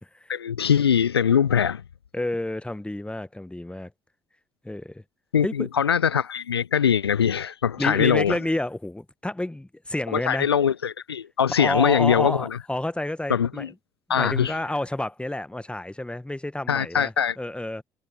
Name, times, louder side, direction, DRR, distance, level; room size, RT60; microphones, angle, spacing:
voice 1, 0.3-1.8 5.3-8.4 10.1-12.6 13.3-13.7 14.1-14.5 16.7-17.4, left 8 dB, 85° left, 0.5 m, -22 dB
voice 2, 2.1-3.9 4.6-5.0 5.4-5.7 7.8-10.5 11.6-13.7 14.1-17.8, left 1 dB, 10° left, 1.5 m, -29 dB
figure-of-eight pair, 45°, 13 cm